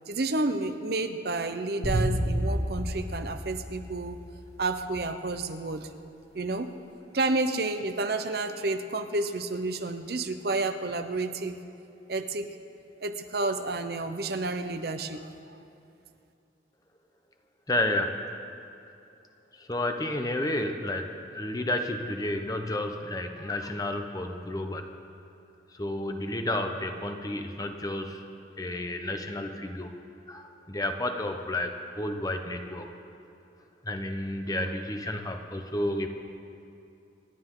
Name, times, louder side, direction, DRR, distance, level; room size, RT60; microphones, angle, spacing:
voice 1, 0.1-4.2 4.6-5.9 6.3-6.7 7.1-11.6 12.1-12.5 13.0-15.2, right 2 dB, 60° right, 8 dB, 0.8 m, -30 dB
sound 1, 1.8-4.3, equal, 70° left, 4.2 m, -29 dB
voice 2, 17.7-18.2 19.6-24.9 25.7-28.3 28.6-30.0 30.3-32.9 33.8-36.1, left 1 dB, 20° left, 5 dB, 0.9 m, -31 dB
27.5 x 11.5 x 3.9 m, 2.7 s
head